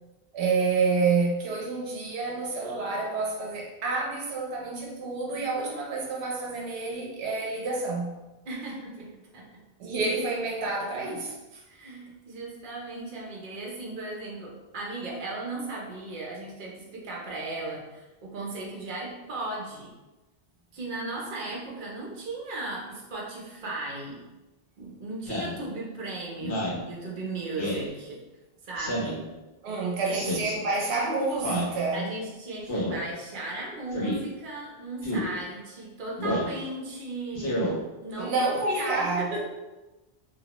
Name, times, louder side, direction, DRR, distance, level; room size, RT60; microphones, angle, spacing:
voice 1, 0.3-8.1 9.8-11.6 29.6-32.1 38.2-39.4, right 3 dB, 85° right, -2 dB, 0.8 m, -28 dB
voice 2, 8.4-9.5 11.7-19.9 20.7-24.2 24.8-28.2 28.6-29.2 30.0-30.3 31.9-37.7 38.0-38.3 38.6-39.4, right 2 dB, 55° right, -3 dB, 0.8 m, -36 dB
Speech synthesizer, 25.3-25.6 26.4-26.8 27.6-27.9 28.8-29.2 30.1-30.5 31.4-31.7 32.7-33.0 33.9-34.2 35.0-35.3 36.2-36.5 37.3-37.7, equal, 55° left, 0.8 m, -29 dB
2.8 x 2.0 x 2.8 m, 1.1 s
omnidirectional pair, 1.1 m